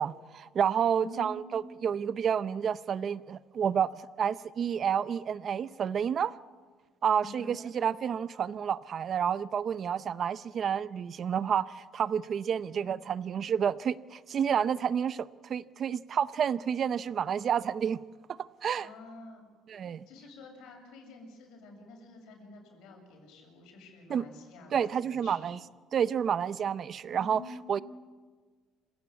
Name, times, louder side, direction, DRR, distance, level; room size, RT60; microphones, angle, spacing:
voice 1, 0.0-6.4 7.0-18.0 18.3-18.9 19.7-20.1 24.1-24.3 24.7-25.6 25.9-27.4 27.7-27.8, right 8 dB, 40° right, 0.6 m, -30 dB
voice 2, 0.9-1.4 7.2-7.5 12.7-12.9 18.8-19.5 20.1-25.5 27.1-27.8, left 3 dB, 75° left, 7.3 m, -49 dB
27.5 x 16.0 x 8.6 m
cardioid pair, 145°, 0 cm